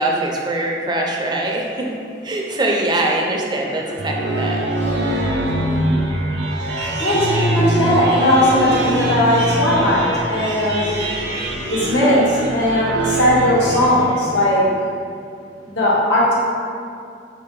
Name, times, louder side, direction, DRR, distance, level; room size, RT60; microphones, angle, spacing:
voice 1, 0.0-1.9 2.2-4.6, right 1 dB, 25° right, -1 dB, 0.4 m, -22 dB
sound 1, 3.7-14.6, right 1 dB, 80° right, 0.6 m, -23 dB
voice 2, 7.0-10.9 11.7-14.6 15.6-16.3, left 1 dB, 85° left, -8 dB, 1.3 m, -17 dB
4.5 x 2.7 x 3.6 m, 2.4 s
head